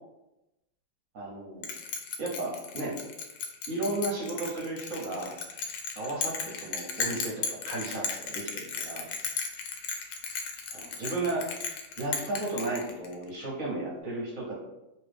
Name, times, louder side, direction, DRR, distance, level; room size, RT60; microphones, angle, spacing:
voice 1, 1.1-1.7 2.2-3.0 3.7-5.4 6.0-9.1 10.7-11.5 12.0-14.5, right 2 dB, 55° right, -4 dB, 0.9 m, -34 dB
Bell, 1.6-13.3, left 5 dB, 75° left, 1.1 m, -35 dB
3.0 x 2.9 x 3.2 m, 0.95 s
omnidirectional pair, 2.2 m